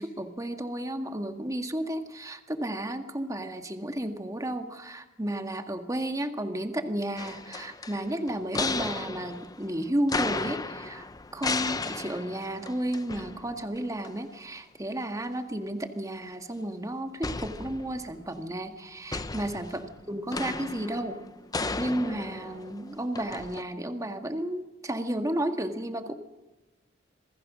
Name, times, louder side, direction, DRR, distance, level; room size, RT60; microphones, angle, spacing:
voice 1, 0.0-19.8 20.1-21.2 21.8-26.1, right 1 dB, 15° right, 6 dB, 1.9 m, -32 dB
sound 1, 7.2-13.8 14.0-14.1 17.2-18.3 19.1-23.6, left 3 dB, 20° left, 0.8 m, -35 dB
27.0 x 20.5 x 6.3 m, 1.1 s
head